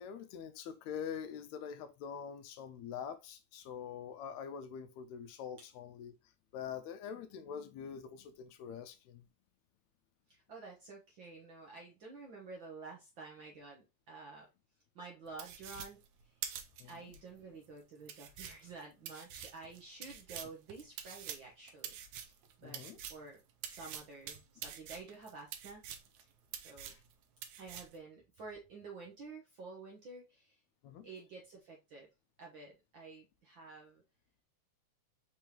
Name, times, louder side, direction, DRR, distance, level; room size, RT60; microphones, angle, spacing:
voice 1, 0.0-6.2 6.5-9.2 16.8-16.9 22.6-23.0 26.8-27.0 30.8-31.1, left 7 dB, 80° left, 1.8 m, -45 dB
voice 2, 10.3-14.5 14.9-16.0 16.2-16.3 16.8-22.8 23.1-23.4 23.6-25.8 26.6-26.9 27.6-30.6 31.0-32.1 32.4-34.0, right 4 dB, 60° right, 1.3 m, -50 dB
sound 1, 15.4-17.2 17.6-17.7 18.1-23.3 23.6-26.2 26.5-27.1 27.4-28.0, right 9 dB, 80° right, 2.0 m, -46 dB
5.3 x 3.4 x 2.9 m
omnidirectional pair, 3.3 m